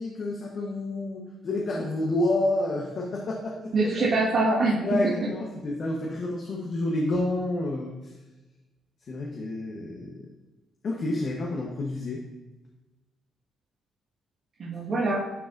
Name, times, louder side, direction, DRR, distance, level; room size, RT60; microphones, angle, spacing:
voice 1, 0.0-4.1 4.8-8.1 9.1-10.2 10.8-12.2, left 2 dB, 55° left, -2 dB, 1.0 m, -29 dB
voice 2, 3.7-5.1 14.6-15.2, right 2 dB, 60° right, -8 dB, 1.7 m, -24 dB
11.0 x 4.8 x 2.6 m, 1.1 s
cardioid pair, 90°, 0 cm